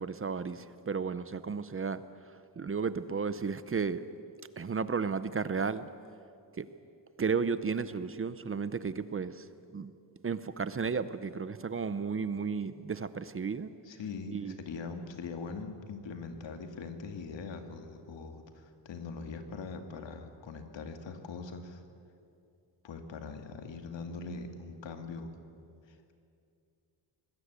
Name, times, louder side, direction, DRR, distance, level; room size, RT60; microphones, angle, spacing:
voice 1, 0.0-2.0 2.6-4.0 4.6-5.9 6.6-6.7 7.2-9.5 9.7-9.9 10.2-13.7 14.3-14.6, right 5 dB, 30° right, 14 dB, 0.7 m, -33 dB
voice 2, 13.8-21.8 22.8-25.3, left 4 dB, 85° left, 6 dB, 2.4 m, -42 dB
26.0 x 20.0 x 8.2 m, 2.5 s
wide cardioid pair, 175°, 43 cm